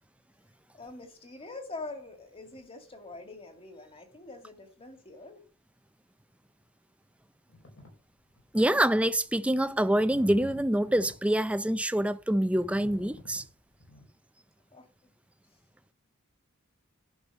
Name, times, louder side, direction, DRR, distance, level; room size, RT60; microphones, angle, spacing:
voice 1, 0.7-5.4 14.7-14.9, left 3 dB, 25° left, 2.3 m, -44 dB
sound 1, 7.5-7.9 8.4-8.6 9.1-14.1, equal, 70° left, 4.8 m, -49 dB
voice 2, 8.5-13.4, right 1 dB, 5° right, 0.5 m, -26 dB
11.0 x 6.1 x 6.8 m
head